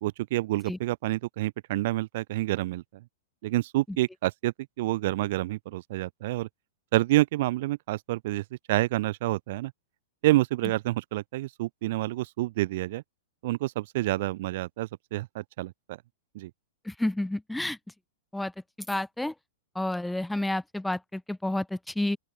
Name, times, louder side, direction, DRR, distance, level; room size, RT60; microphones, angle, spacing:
voice 1, 0.0-3.0 3.4-6.5 6.9-9.7 10.2-13.0 13.4-16.0 16.3-16.5, right 17 dB, 60° right, 1.5 m, -28 dB
voice 2, 16.8-17.8 18.3-18.5 18.9-19.3 19.7-22.2, left 1 dB, 5° left, 3.4 m, -30 dB
open air
hypercardioid pair, 130°, 0 cm